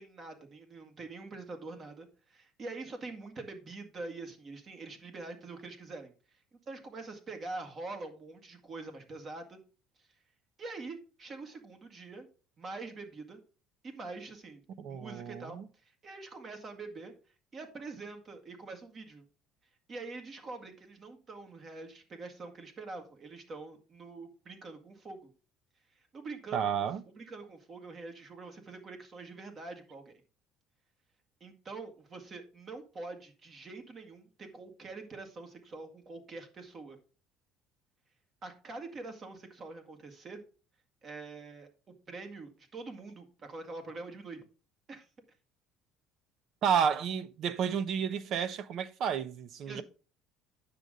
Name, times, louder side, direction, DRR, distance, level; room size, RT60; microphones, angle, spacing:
voice 1, 0.0-9.6 10.6-12.3 12.6-13.4 13.8-17.1 17.5-19.2 19.9-25.3 26.0-26.9 27.1-30.1 31.4-37.0 38.4-40.4 41.0-41.7 42.1-44.4 44.9-45.1 49.7-49.8, right 3 dB, 35° right, 2.1 m, -45 dB
voice 2, 14.8-15.7 26.5-27.0 46.6-49.8, right 7 dB, 55° right, 0.7 m, -31 dB
9.7 x 6.7 x 3.8 m
cardioid pair, 125°, 0 cm